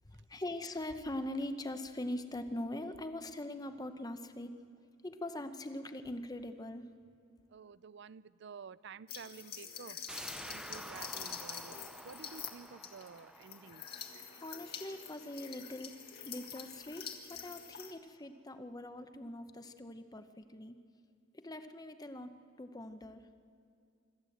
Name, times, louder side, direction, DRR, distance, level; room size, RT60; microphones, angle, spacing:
voice 1, 0.0-4.6 5.0-6.9 14.2-16.0 16.3-20.8 21.3-23.3, left 1 dB, 20° left, 9 dB, 0.8 m, -42 dB
voice 2, 7.5-10.0 10.4-11.8 12.0-13.8 14.2-14.3, right 6 dB, 60° right, 18 dB, 0.4 m, -51 dB
sound 1, 9.1-17.9, left 7 dB, 50° left, 1.6 m, -46 dB
sound 2, 10.1-15.6 15.9-16.0, right 1 dB, 5° right, 0.5 m, -50 dB
25.5 x 13.0 x 7.8 m, 2.4 s
head